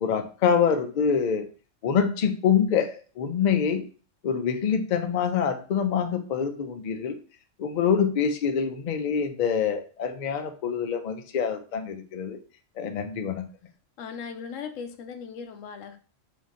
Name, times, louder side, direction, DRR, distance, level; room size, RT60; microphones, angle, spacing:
voice 1, 0.0-1.5 1.8-3.8 4.2-7.2 7.6-12.4 12.8-13.4, left 7 dB, 60° left, 7 dB, 0.5 m, -25 dB
voice 2, 14.0-16.0, left 6 dB, 85° left, 7 dB, 1.0 m, -38 dB
3.7 x 2.6 x 3.7 m, 0.38 s
omnidirectional pair, 1.3 m